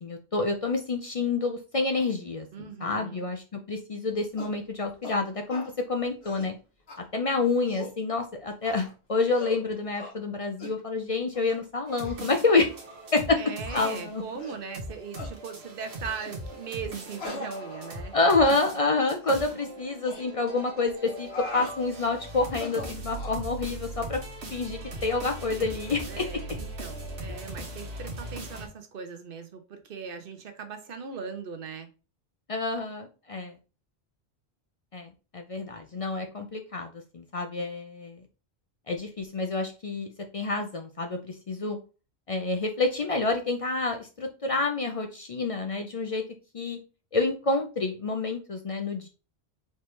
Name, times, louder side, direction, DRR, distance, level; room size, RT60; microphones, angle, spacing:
voice 1, 0.0-6.5 7.1-12.7 13.1-13.4 13.7-14.2 18.1-24.2 24.5-26.2 32.5-33.5 34.9-38.2 38.9-40.1 40.3-41.8 42.3-46.2 46.5-46.8 47.1-49.1, left 3 dB, 50° left, 0.4 m, -28 dB
voice 2, 2.5-3.3 13.3-18.1 26.1-31.9, right 6 dB, 60° right, 0.8 m, -39 dB
sound 1, 4.4-4.6 5.0-5.2 5.5-5.7 6.1-6.5 6.9-7.0 7.5-8.0 8.6-8.9 9.3-9.6 10.0-10.2 10.6-10.8 11.3-11.6 12.0-12.2 12.8-12.9 13.7-13.9 14.4-14.6 15.2-15.4 16.1-16.4 17.2-18.1 18.4-18.6 19.2-19.5 20.0-20.2 21.1-21.8 22.5-23.4, left 3 dB, 70° left, 1.3 m, -40 dB
sound 2, 11.9-28.7, right 1 dB, 85° right, 1.3 m, -40 dB
4.3 x 3.1 x 3.2 m
omnidirectional pair, 1.1 m